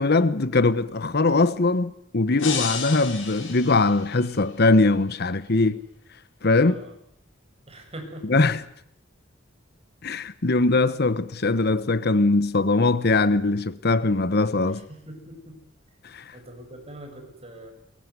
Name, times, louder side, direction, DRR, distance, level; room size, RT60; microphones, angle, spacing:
voice 1, 0.0-5.8 6.4-6.8 8.2-8.6 10.0-14.8 16.1-16.2, left 3 dB, 55° left, 1.0 m, -21 dB
sound 1, 2.4-4.5, left 6 dB, 80° left, 6.2 m, -32 dB
voice 2, 6.6-6.9 7.7-8.2 15.1-15.5 16.3-17.7, right 1 dB, 30° right, 7.0 m, -42 dB
22.5 x 22.0 x 9.5 m
head